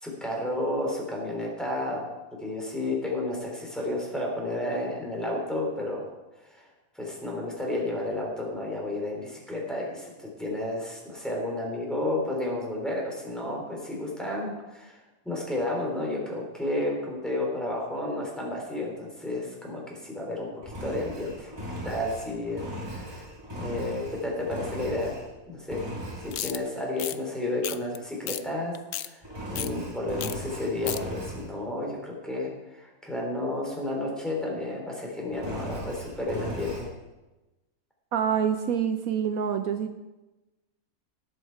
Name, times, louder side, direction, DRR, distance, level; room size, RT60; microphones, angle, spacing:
voice 1, 0.0-6.1 6.4-6.6 7.0-14.9 15.3-20.5 20.8-21.5 21.8-22.7 22.9-23.2 23.5-25.1 25.5-25.8 26.2-29.2 29.5-36.9, left 1 dB, ahead, -2 dB, 3.4 m, -31 dB
Engine, 20.6-25.3 25.7-26.4 29.2-31.5 35.3-36.9, equal, 15° right, 2.8 m, -38 dB
sound 1, 26.3-26.6 27.0-27.2 27.6-28.0 28.3-28.4 28.7-29.1 29.6-29.7 30.2-30.4 30.6-31.0, left 11 dB, 65° left, 0.7 m, -33 dB
voice 2, 38.1-40.0, right 8 dB, 75° right, 8 dB, 1.1 m, -26 dB
18.5 x 8.0 x 4.6 m, 1.1 s
omnidirectional pair, 1.5 m